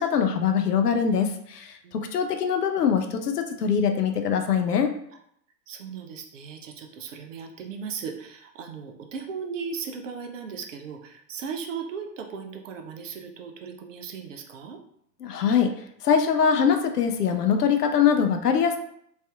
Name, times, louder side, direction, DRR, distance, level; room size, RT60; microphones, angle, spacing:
voice 1, 0.0-4.9 15.2-15.7 16.0-18.8, left 7 dB, 70° left, 7 dB, 0.5 m, -23 dB
voice 2, 5.7-14.8, right 6 dB, 50° right, 3 dB, 0.5 m, -37 dB
3.2 x 2.6 x 2.3 m, 0.69 s
figure-of-eight pair, 100°, 50 cm